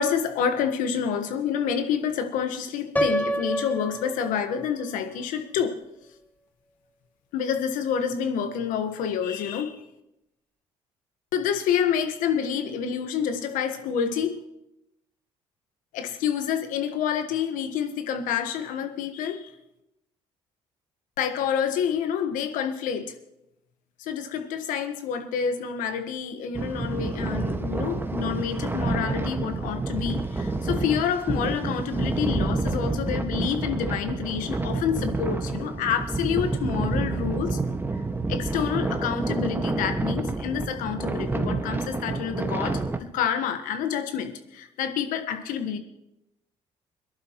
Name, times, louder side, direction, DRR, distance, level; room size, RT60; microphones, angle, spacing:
voice 1, 0.0-5.8 7.3-9.8 11.3-14.4 15.9-19.5 21.2-23.1 24.0-37.6 38.3-45.8, left 8 dB, 75° left, 8 dB, 1.4 m, -28 dB
Piano, 3.0-4.9, right 1 dB, 10° left, 0.9 m, -28 dB
sound 1, 26.5-43.0, right 3 dB, 15° right, 1.7 m, -28 dB
22.5 x 11.5 x 3.1 m, 0.85 s
hypercardioid pair, 55°, 14 cm